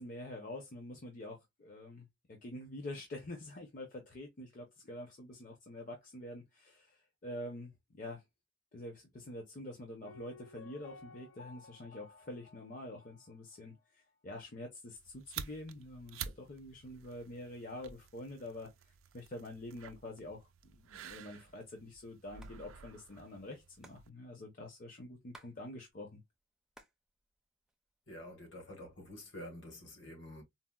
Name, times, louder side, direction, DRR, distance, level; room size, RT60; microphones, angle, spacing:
voice 1, 0.0-8.2 8.7-26.2, left 1 dB, 40° left, 0.6 m, -47 dB
Piano, 10.1-13.8 14.1-14.2, left 3 dB, 85° left, 0.5 m, -57 dB
sound 1, 14.9-24.1, right 8 dB, 85° right, 0.4 m, -50 dB
Hands, 22.4-22.6 22.8-22.9 23.1-25.6 25.9-27.0 27.4-28.1 28.7-29.3, right 2 dB, 5° right, 0.4 m, -59 dB
voice 2, 28.1-30.4, left 1 dB, 65° left, 1.3 m, -48 dB
4.0 x 2.0 x 2.2 m
head